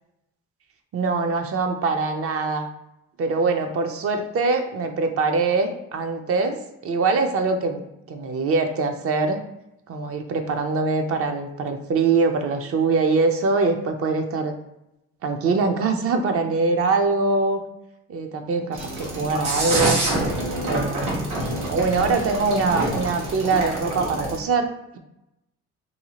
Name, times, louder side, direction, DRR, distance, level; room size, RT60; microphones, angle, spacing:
voice 1, 0.9-2.7 3.2-6.6 6.8-9.4 9.9-14.5 15.2-17.6 18.1-20.0 20.6-21.2 21.7-24.7, right 4 dB, 50° right, 5 dB, 0.5 m, -23 dB
sound 1, 18.7-24.4, right 1 dB, 80° right, 1.0 m, -26 dB
2.7 x 2.3 x 2.8 m, 0.87 s
supercardioid pair, 75°, 30 cm